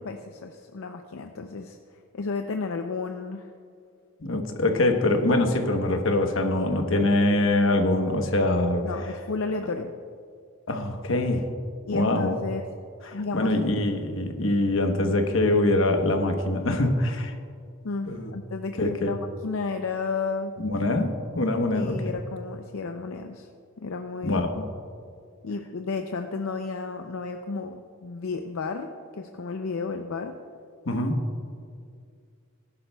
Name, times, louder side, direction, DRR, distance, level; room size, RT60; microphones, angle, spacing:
voice 1, 0.0-1.8 2.1-3.5 8.8-9.9 11.9-12.6 13.1-13.5 17.8-20.5 21.7-23.5 23.8-24.4 25.4-30.4, left 4 dB, 80° left, 5 dB, 0.5 m, -32 dB
voice 2, 4.2-8.9 10.7-11.5 11.9-12.4 13.0-17.3 18.1-18.3 18.8-19.1 20.6-22.2 24.2-24.7 30.9-31.2, left 2 dB, 65° left, 5 dB, 1.1 m, -24 dB
18.5 x 11.0 x 2.3 m, 2.3 s
head